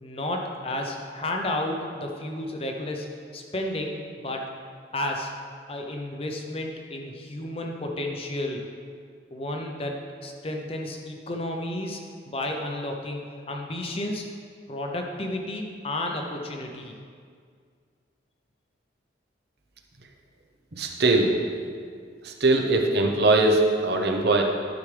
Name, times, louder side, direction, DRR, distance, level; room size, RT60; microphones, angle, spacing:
voice 1, 0.0-3.1 3.3-4.5 4.9-5.3 5.7-8.6 9.3-12.0 12.3-14.3 14.7-16.9, left 1 dB, 30° left, 2 dB, 0.6 m, -32 dB
voice 2, 20.7-21.3 22.2-24.4, right 2 dB, 55° right, 3 dB, 0.7 m, -21 dB
10.5 x 6.2 x 3.3 m, 2.1 s
head